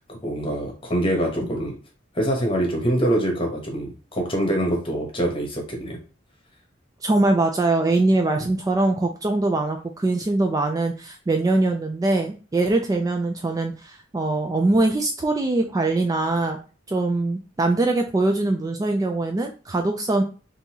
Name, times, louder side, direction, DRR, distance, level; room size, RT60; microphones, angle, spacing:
voice 1, 0.2-1.8 2.1-6.0, right 1 dB, 30° left, 1.1 m, -24 dB
voice 2, 7.0-16.6 16.9-20.2, right 2 dB, 20° right, 0.3 m, -22 dB
3.7 x 2.7 x 2.8 m
head